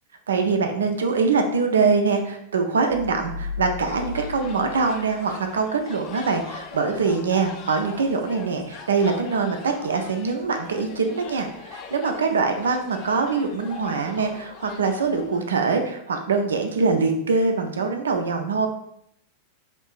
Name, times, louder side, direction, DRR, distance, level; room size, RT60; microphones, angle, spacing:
voice 1, 0.3-18.7, right 4 dB, 70° right, 5 dB, 0.4 m, -23 dB
sound 1, 2.9-5.6, left 5 dB, 65° left, 0.7 m, -36 dB
sound 2, 3.8-15.4, left 5 dB, 35° left, 0.4 m, -42 dB
3.5 x 2.6 x 2.4 m, 0.74 s
figure-of-eight pair, 90°, 0 cm